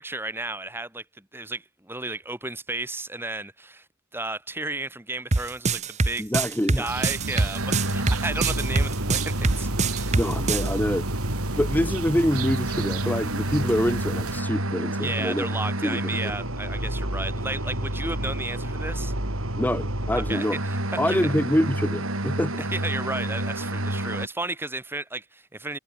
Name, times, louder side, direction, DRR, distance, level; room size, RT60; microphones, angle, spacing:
voice 1, 0.0-3.9 4.1-6.3 6.8-10.1 15.0-19.1 20.1-21.2 22.6-25.8, right 2 dB, 10° right, 2.1 m, -33 dB
sound 1, 5.3-10.7, right 3 dB, 30° right, 0.9 m, -23 dB
voice 2, 6.2-6.9 10.2-11.0 11.6-15.5 15.8-16.4 19.6-20.6 21.0-22.7, equal, 10° left, 1.1 m, -26 dB
sound 2, 6.8-14.4, right 3 dB, 90° right, 2.2 m, -33 dB
sound 3, 7.6-24.3, right 1 dB, 70° right, 6.5 m, -29 dB
head